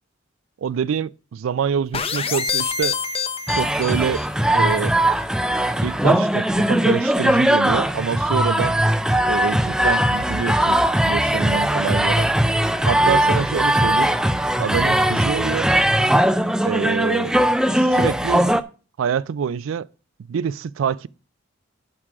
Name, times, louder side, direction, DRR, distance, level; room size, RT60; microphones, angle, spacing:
voice 1, 0.6-3.0 3.5-5.0 5.8-8.8 9.3-10.8 11.1-12.3 12.9-14.2 14.6-15.7 16.6-17.3 17.7-18.5 19.0-19.9 20.3-21.1, right 7 dB, 90° right, 0.4 m, -25 dB
sound 1, 1.9-4.4, left 6 dB, 30° left, 0.6 m, -26 dB
sound 2, 3.5-18.6, right 1 dB, 5° right, 0.3 m, -19 dB
11.0 x 3.7 x 5.9 m
head